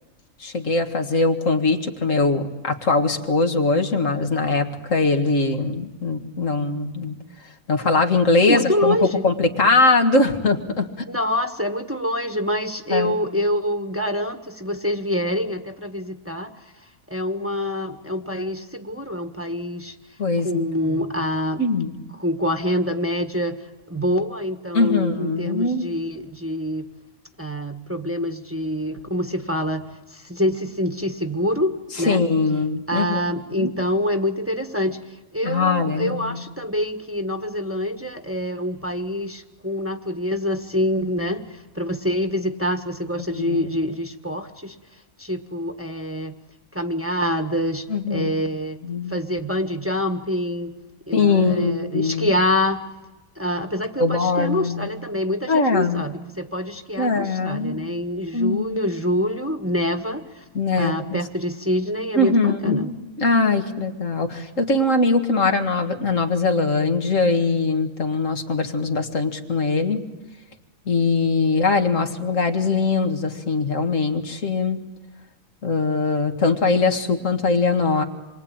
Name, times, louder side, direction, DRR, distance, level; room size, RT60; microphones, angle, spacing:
voice 1, 0.4-7.2 7.7-9.0 9.2-11.1 12.9-13.2 20.2-20.9 21.6-21.9 24.7-25.9 32.1-33.2 33.6-33.7 35.4-36.4 43.3-43.6 47.9-48.3 48.8-49.2 51.1-52.3 54.0-54.9 55.5-56.0 57.0-57.8 58.3-58.8 60.5-61.2 62.2-70.0 70.9-74.8 75.6-78.0, left 3 dB, 60° left, 6 dB, 2.2 m, -21 dB
voice 2, 8.5-9.3 11.1-16.5 17.1-20.0 20.4-21.6 22.2-26.9 27.4-32.2 32.9-46.4 46.7-48.8 49.1-50.7 51.1-52.8 53.3-60.4 60.8-62.9, left 1 dB, 10° right, 4 dB, 1.4 m, -26 dB
27.5 x 23.0 x 8.8 m, 1.1 s
omnidirectional pair, 1.5 m